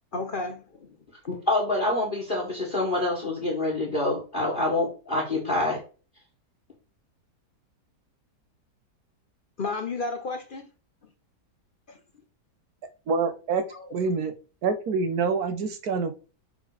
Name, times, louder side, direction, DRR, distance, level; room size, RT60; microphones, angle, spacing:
voice 1, 0.1-1.0 9.6-10.7 11.9-12.0 13.7-13.9, left 3 dB, 50° left, 0.6 m, -32 dB
voice 2, 1.3-5.8, left 2 dB, 30° left, 1.8 m, -26 dB
voice 3, 13.1-13.6 13.9-14.3 14.6-16.1, right 5 dB, 65° right, 1.4 m, -26 dB
7.0 x 3.9 x 4.9 m
omnidirectional pair, 1.8 m